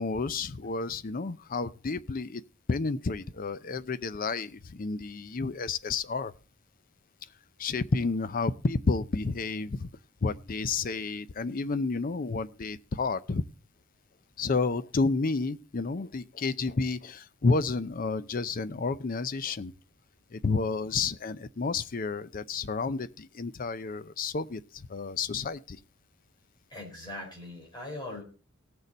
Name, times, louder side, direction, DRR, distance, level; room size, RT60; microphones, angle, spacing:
voice 1, 0.0-2.4 2.7-6.3 7.6-9.9 10.2-13.4 14.4-19.7 20.3-25.8, left 4 dB, 40° left, 0.5 m, -30 dB
voice 2, 26.7-28.2, left 1 dB, 20° left, 4.1 m, -40 dB
18.0 x 6.7 x 4.0 m
head